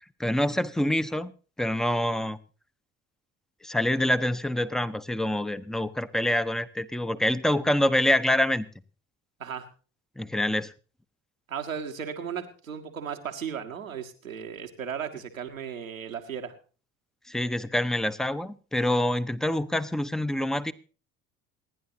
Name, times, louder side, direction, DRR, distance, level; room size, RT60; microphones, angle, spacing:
voice 1, 0.2-1.3 1.6-2.4 3.6-8.7 10.2-10.7 17.3-20.7, left 1 dB, ahead, 14 dB, 0.8 m, -26 dB
voice 2, 11.5-16.5, right 7 dB, 90° right, 4 dB, 1.5 m, -35 dB
28.0 x 10.5 x 2.7 m, 0.37 s
figure-of-eight pair, 55°, 39 cm